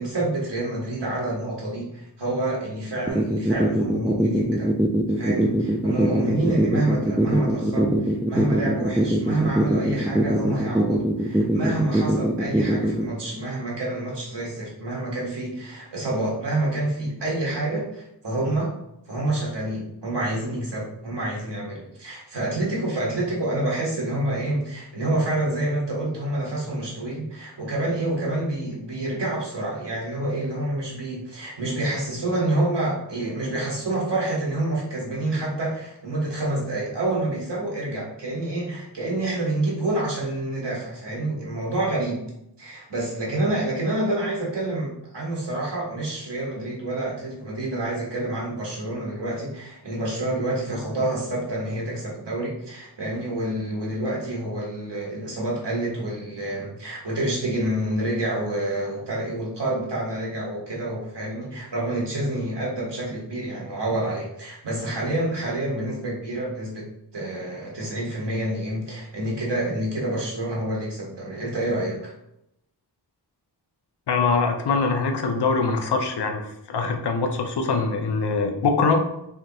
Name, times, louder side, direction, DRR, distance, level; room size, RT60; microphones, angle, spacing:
voice 1, 0.0-4.7 5.1-18.7 19.1-42.2 42.6-66.8 67.1-72.1, right 1 dB, 80° right, -4 dB, 1.4 m, -28 dB
sound 1, 3.1-13.1, right 1 dB, 5° right, 0.3 m, -21 dB
voice 2, 74.1-76.4 76.7-79.0, left 4 dB, 75° left, 4 dB, 0.6 m, -23 dB
3.4 x 2.8 x 3.8 m, 0.80 s
wide cardioid pair, 50°, 41 cm